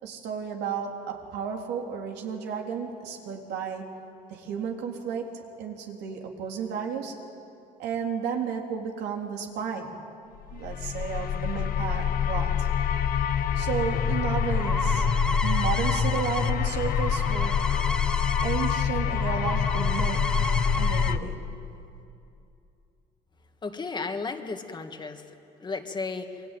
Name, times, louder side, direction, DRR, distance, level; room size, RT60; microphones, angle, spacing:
voice 1, 0.0-3.9 4.3-5.3 5.6-7.1 7.8-10.0 10.5-12.5 13.6-15.1 15.4-17.5 18.4-20.2 20.8-21.4, right 7 dB, 80° right, 1 dB, 3.7 m, -32 dB
sound 1, 10.5-21.2, left 7 dB, 60° left, 1.3 m, -26 dB
sound 2, 14.5-18.8 19.1-21.1, left 1 dB, 5° left, 1.2 m, -33 dB
voice 2, 23.6-25.3 25.6-26.3, left 4 dB, 25° left, 5 dB, 2.2 m, -33 dB
28.5 x 22.5 x 9.3 m, 2.6 s
cardioid pair, 110°, 17 cm